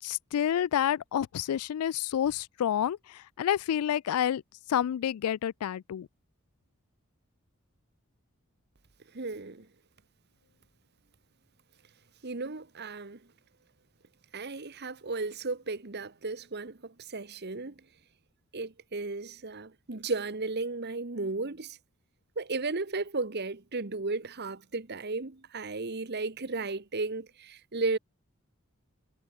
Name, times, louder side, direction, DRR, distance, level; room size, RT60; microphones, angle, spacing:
voice 1, 0.0-4.4 4.7-6.1, left 9 dB, 85° left, 0.3 m, -29 dB
voice 2, 9.1-9.7 12.2-13.2 14.3-17.7 18.5-21.8 22.4-28.0, right 3 dB, 50° right, 1.2 m, -34 dB
head